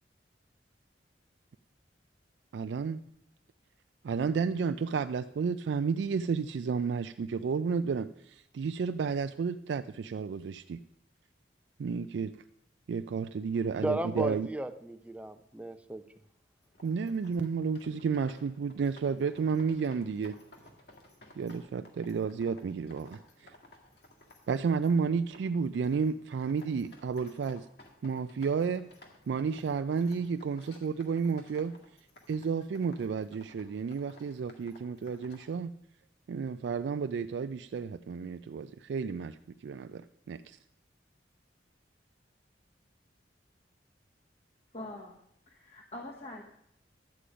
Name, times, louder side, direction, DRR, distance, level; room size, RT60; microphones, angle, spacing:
voice 1, 2.5-3.0 4.0-10.8 11.8-12.3 12.9-14.5 16.8-20.4 21.4-23.5 24.5-27.7 28.0-28.9 29.3-31.7 32.3-35.7 36.3-40.6, right 5 dB, 75° right, 10 dB, 0.3 m, -32 dB
voice 2, 13.8-16.0, right 2 dB, 5° right, 9 dB, 0.5 m, -34 dB
sound 1, 16.6-35.5, left 1 dB, 60° left, 2.0 m, -57 dB
voice 3, 44.7-45.2 45.5-46.4, left 1 dB, 35° left, -1 dB, 1.0 m, -43 dB
11.5 x 8.4 x 5.0 m, 0.75 s
head